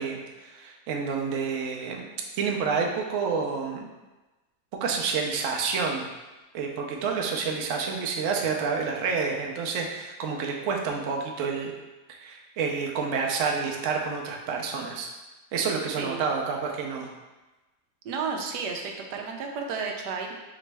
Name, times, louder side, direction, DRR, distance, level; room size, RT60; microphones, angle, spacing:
voice 1, 0.0-2.1 2.4-3.9 4.8-6.0 6.5-11.7 12.2-15.1 15.5-17.1, right 5 dB, 65° right, 1 dB, 0.9 m, -29 dB
voice 2, 18.0-20.3, right 5 dB, 85° right, 2 dB, 1.2 m, -32 dB
4.9 x 3.1 x 3.3 m, 1.1 s
omnidirectional pair, 1.7 m